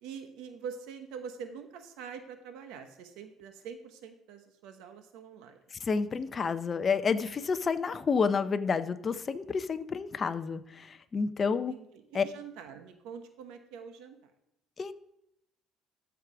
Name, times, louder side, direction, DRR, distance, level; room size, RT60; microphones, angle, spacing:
voice 1, 0.0-5.6 11.4-14.3, right 6 dB, 90° right, 7 dB, 1.0 m, -45 dB
voice 2, 5.7-11.7 12.1-12.2 14.8-14.9, left 5 dB, 30° left, 11 dB, 0.6 m, -30 dB
14.0 x 4.8 x 4.9 m, 0.80 s
cardioid pair, 140°, 0 cm